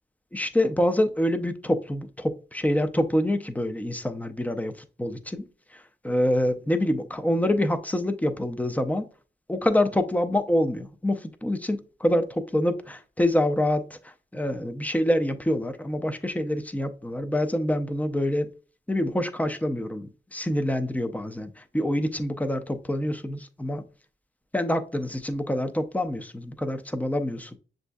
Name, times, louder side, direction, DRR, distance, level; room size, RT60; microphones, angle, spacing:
voice 1, 0.3-5.4 5.7-9.0 9.5-18.5 18.9-23.8 24.5-27.6, left 1 dB, 10° left, 0.4 m, -26 dB
7.0 x 2.6 x 2.2 m
wide cardioid pair, 120°, 19 cm